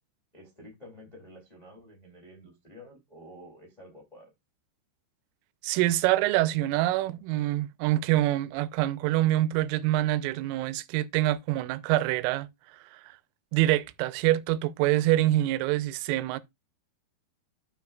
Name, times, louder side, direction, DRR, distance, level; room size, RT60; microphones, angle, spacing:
voice 1, 0.3-4.3, equal, 80° left, 0.3 m, -50 dB
voice 2, 5.6-12.5 12.9-13.2 13.5-16.4, right 15 dB, 85° right, 3.1 m, -25 dB
14.0 x 4.7 x 2.3 m
omnidirectional pair, 5.7 m